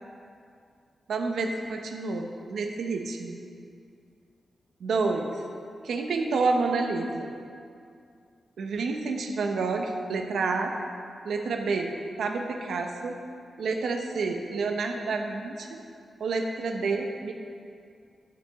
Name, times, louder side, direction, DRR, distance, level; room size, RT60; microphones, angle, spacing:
voice 1, 1.1-3.4 4.8-5.3 5.8-7.3 8.6-10.7 11.2-11.9 12.2-13.2 13.6-15.8 16.2-17.3, right 4 dB, 85° right, 3 dB, 0.8 m, -29 dB
12.0 x 6.1 x 3.6 m, 2.4 s
wide cardioid pair, 130°, 0 cm